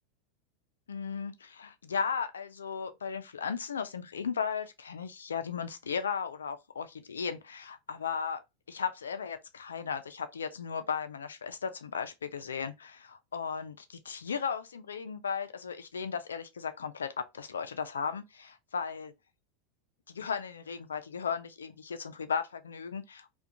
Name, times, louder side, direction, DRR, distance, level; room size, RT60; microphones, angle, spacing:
voice 1, 0.9-8.4 8.7-19.1 20.1-23.3, left 6 dB, 90° left, 0.3 m, -36 dB
2.4 x 2.2 x 2.6 m
hypercardioid pair, 95°, 0 cm